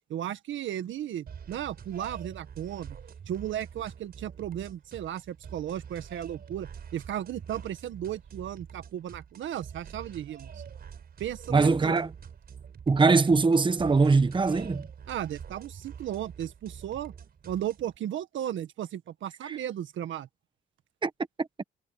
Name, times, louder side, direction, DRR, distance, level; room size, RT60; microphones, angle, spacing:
voice 1, 0.1-3.0 3.3-10.6 11.2-12.0 15.1-17.1 17.4-20.3, right 11 dB, 75° right, 1.8 m, -35 dB
sound 1, 1.3-18.0, right 7 dB, 50° right, 4.9 m, -46 dB
voice 2, 11.5-12.1 12.9-14.8 19.4-19.6 21.0-21.1 21.4-21.5, right 4 dB, 25° right, 1.3 m, -22 dB
cardioid pair, 90°, 20 cm